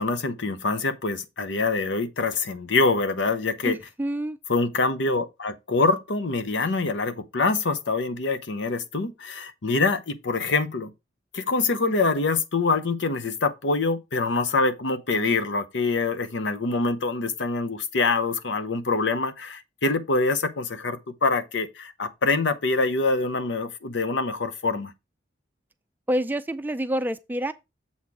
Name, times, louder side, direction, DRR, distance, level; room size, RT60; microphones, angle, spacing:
voice 1, 0.0-3.8 4.5-10.9 11.3-24.9, left 3 dB, 75° left, 0.8 m, -25 dB
voice 2, 3.6-4.4 26.1-27.5, right 1 dB, 10° right, 0.4 m, -27 dB
7.3 x 4.3 x 4.8 m
head